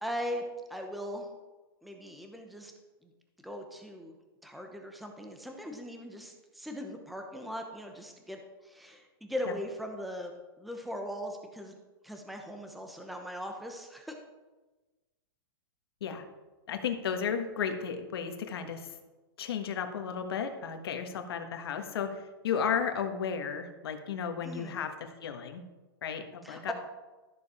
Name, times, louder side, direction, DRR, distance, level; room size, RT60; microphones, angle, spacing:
voice 1, 0.0-0.4 0.7-1.3 1.8-2.7 3.0-3.1 3.4-4.2 4.4-10.3 10.6-11.7 12.0-14.1 24.4-24.7 26.4-26.7, equal, ahead, 3 dB, 0.8 m, -39 dB
voice 2, 16.7-18.9 19.4-25.6 26.0-26.7, left 7 dB, 75° left, 6 dB, 1.5 m, -34 dB
13.0 x 7.1 x 4.3 m, 1.2 s
supercardioid pair, 160°, 13 cm